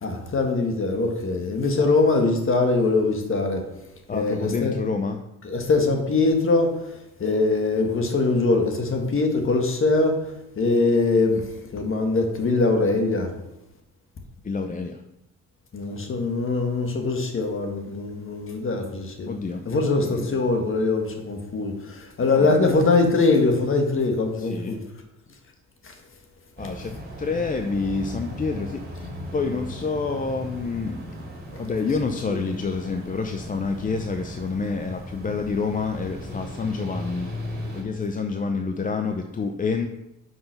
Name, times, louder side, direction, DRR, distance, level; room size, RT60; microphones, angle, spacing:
voice 1, 0.0-3.6 4.1-4.7 5.4-6.9 7.2-10.1 10.6-11.4 11.7-13.3 15.7-19.4 19.6-24.8 25.8-25.9 31.5-31.6, left 3 dB, 45° left, 4 dB, 1.6 m, -22 dB
voice 2, 4.1-5.2 14.4-15.0 19.2-19.7 20.0-20.4 22.2-22.8 24.4-24.8 26.6-29.0 29.3-31.0 31.6-37.3 37.7-39.9, left 4 dB, 25° left, 6 dB, 0.6 m, -28 dB
sound 1, 26.6-37.8, equal, 30° right, 2.5 m, -37 dB
5.6 x 5.4 x 5.8 m, 0.90 s
cardioid pair, 90°, 30 cm